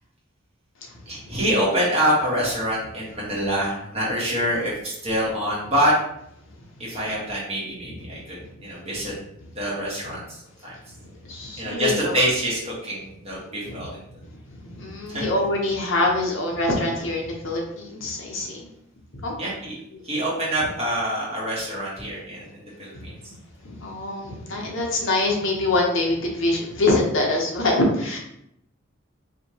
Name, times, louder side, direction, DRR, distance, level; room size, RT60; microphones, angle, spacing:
voice 1, 1.1-5.9 6.8-9.1 9.5-10.2 10.6-10.7 11.6-14.0 15.1-15.2 19.4-19.7 20.0-23.1, equal, 30° right, -6 dB, 1.4 m, -25 dB
voice 2, 11.2-12.2 13.6-13.7 14.3-14.4 14.8-18.6 19.1-19.3 19.9-20.0 22.9-23.0 23.6-28.2, left 2 dB, 60° left, 0 dB, 0.8 m, -24 dB
4.7 x 2.7 x 2.9 m, 0.76 s
head